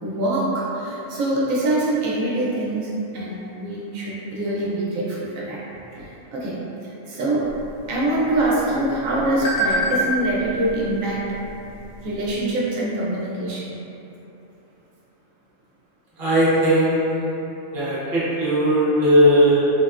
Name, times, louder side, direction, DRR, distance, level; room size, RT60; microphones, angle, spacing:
voice 1, 0.0-5.6 5.9-6.6 6.8-7.5 7.9-11.3 12.0-13.8, right 1 dB, 85° right, -7 dB, 1.0 m, -24 dB
sound 1, 7.4-12.5, equal, 70° left, 0.9 m, -30 dB
voice 2, 16.2-17.4 17.7-19.7, equal, 45° right, -10 dB, 1.0 m, -18 dB
3.5 x 2.1 x 2.4 m, 3.0 s
omnidirectional pair, 1.4 m